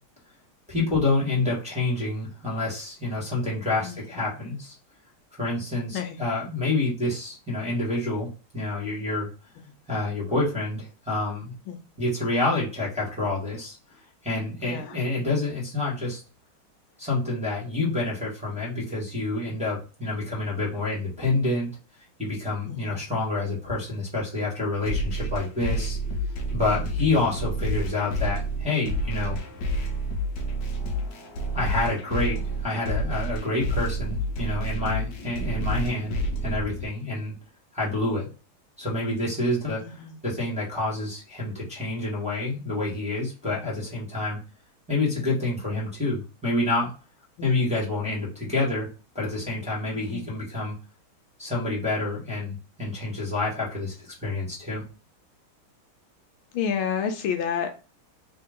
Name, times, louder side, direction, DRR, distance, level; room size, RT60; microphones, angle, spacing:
voice 1, 0.7-4.7 5.4-8.3 8.5-9.3 9.9-11.5 12.0-16.2 17.0-21.7 22.2-26.0 26.5-29.4 31.5-37.3 37.7-38.3 38.8-44.4 44.9-46.9 47.4-48.9 49.1-50.7 51.4-54.8, left 2 dB, 5° right, -7 dB, 1.5 m, -28 dB
voice 2, 14.6-15.0 22.7-22.9 26.7-26.8 27.1-27.3 39.8-40.2 47.4-47.7 49.9-50.3 56.5-57.8, left 7 dB, 80° left, 6 dB, 1.4 m, -30 dB
sound 1, 24.9-36.9, right 1 dB, 60° left, 1.1 m, -29 dB
3.7 x 3.0 x 3.6 m, 0.33 s
omnidirectional pair, 2.3 m